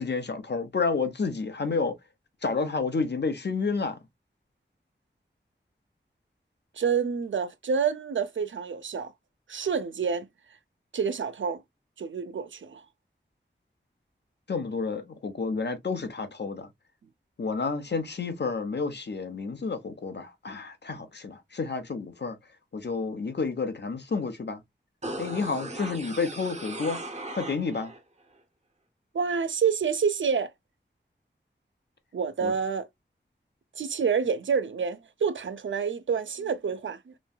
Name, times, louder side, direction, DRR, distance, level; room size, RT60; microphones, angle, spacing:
voice 1, 0.0-1.9 2.4-4.0 14.5-16.7 17.4-22.4 22.7-24.6 25.2-27.0 27.3-27.9 32.4-32.5, left 4 dB, 60° left, 0.7 m, -30 dB
voice 2, 6.8-9.1 9.5-10.3 10.9-11.6 12.0-12.8 29.1-30.5 32.1-32.9 33.8-37.0, right 6 dB, 75° right, 0.4 m, -28 dB
sound 1, 25.0-28.0 28.3-28.4, right 2 dB, 35° right, 0.7 m, -38 dB
3.0 x 2.6 x 2.2 m
wide cardioid pair, 70°, 20 cm